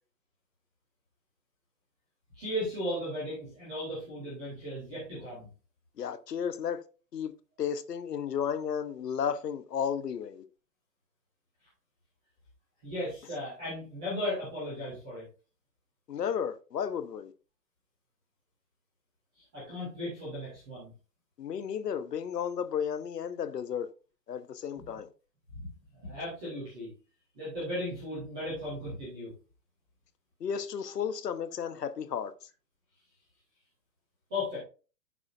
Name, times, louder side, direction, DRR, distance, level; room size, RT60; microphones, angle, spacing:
voice 1, 2.3-5.5 12.8-15.3 19.4-20.9 24.7-24.9 25.5-26.9 27.3-29.3 34.3-34.6, left 1 dB, 5° right, 0.4 m, -36 dB
voice 2, 6.0-6.8 7.1-7.3 7.6-10.4 16.1-17.3 21.4-23.9 24.3-25.1 30.4-32.3, left 8 dB, 70° left, 1.1 m, -33 dB
11.0 x 4.8 x 2.5 m
hypercardioid pair, 125°, 50 cm